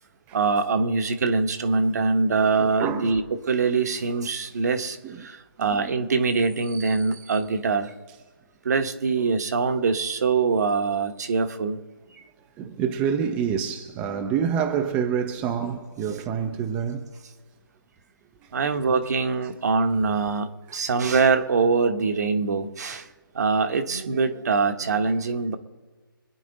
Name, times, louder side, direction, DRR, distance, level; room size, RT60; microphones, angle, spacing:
voice 1, 0.3-3.2 3.5-7.9 8.6-11.8 18.5-23.1 23.3-25.6, right 4 dB, 45° right, 1.2 m, -23 dB
voice 2, 2.6-3.1 5.0-5.3 5.6-5.8 12.6-17.0 18.4-18.5 20.7-20.8, right 7 dB, 10° right, 0.6 m, -27 dB
25.5 x 9.5 x 4.0 m
figure-of-eight pair, 150°, 12 cm